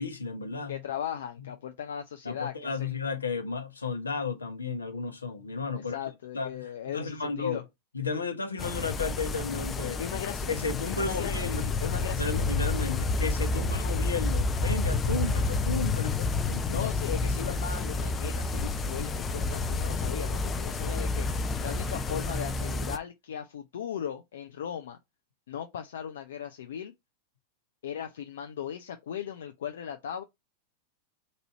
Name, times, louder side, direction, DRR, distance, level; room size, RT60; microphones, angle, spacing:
voice 1, 0.0-0.8 2.2-6.0 6.3-7.6 7.9-10.0 10.5-11.7 12.1-16.9, left 4 dB, 85° left, 0.9 m, -33 dB
voice 2, 0.7-3.0 5.9-7.6 10.0-10.7 11.0-12.5 16.7-25.0 25.5-26.9 27.8-30.2, left 8 dB, 65° left, 0.5 m, -38 dB
sound 1, 8.6-23.0, left 3 dB, 20° left, 0.6 m, -29 dB
4.1 x 2.7 x 4.4 m
figure-of-eight pair, 90°, 0 cm